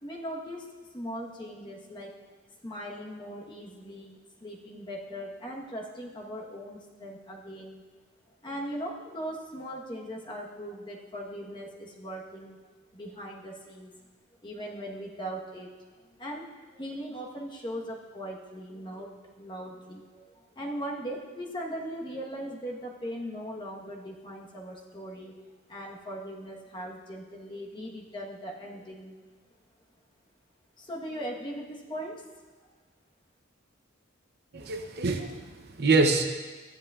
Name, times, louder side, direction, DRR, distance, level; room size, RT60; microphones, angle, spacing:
voice 1, 0.0-2.2 2.6-7.8 8.4-12.6 12.9-13.9 14.4-15.7 16.2-25.4 25.7-29.2 30.8-32.3, equal, 20° left, -2 dB, 1.2 m, -39 dB
voice 2, 34.5-36.3, right 3 dB, 50° right, 4 dB, 0.7 m, -25 dB
14.0 x 10.5 x 2.4 m, 1.3 s
head